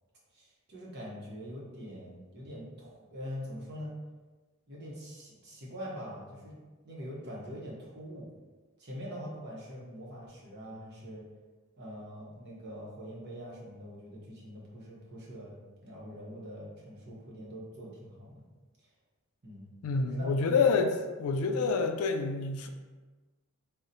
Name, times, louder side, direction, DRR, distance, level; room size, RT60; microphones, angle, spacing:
voice 1, 0.3-3.9 4.7-6.6 6.8-8.3 8.8-11.2 11.8-18.5 19.4-19.7 20.0-20.3, equal, 50° right, -5 dB, 0.8 m, -44 dB
voice 2, 19.8-22.7, left 4 dB, 75° left, 6 dB, 0.3 m, -27 dB
2.7 x 2.1 x 3.9 m, 1.3 s
head